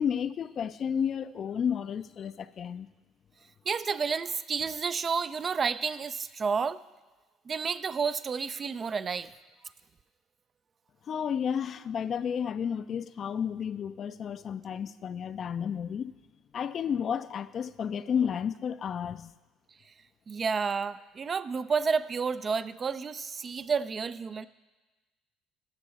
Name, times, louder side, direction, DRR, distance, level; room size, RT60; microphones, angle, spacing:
voice 1, 0.0-2.9 11.1-16.1 16.5-19.3, left 7 dB, 50° left, 0.4 m, -32 dB
voice 2, 3.7-6.8 7.5-9.3 20.3-24.5, right 5 dB, 40° right, 0.4 m, -30 dB
13.5 x 6.2 x 4.2 m
hypercardioid pair, 60°, 0 cm